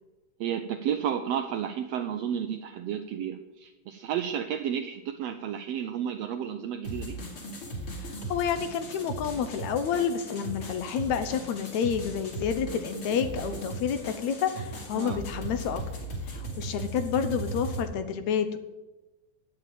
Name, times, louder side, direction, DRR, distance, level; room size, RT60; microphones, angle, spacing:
voice 1, 0.4-7.2 14.9-15.2, right 9 dB, 80° right, 7 dB, 1.5 m, -32 dB
sound 1, 6.8-17.8, right 1 dB, 40° left, 3.0 m, -37 dB
voice 2, 8.0-15.8 16.3-18.6, left 7 dB, 75° left, 9 dB, 2.0 m, -29 dB
10.0 x 7.7 x 9.0 m, 1.1 s
omnidirectional pair, 3.6 m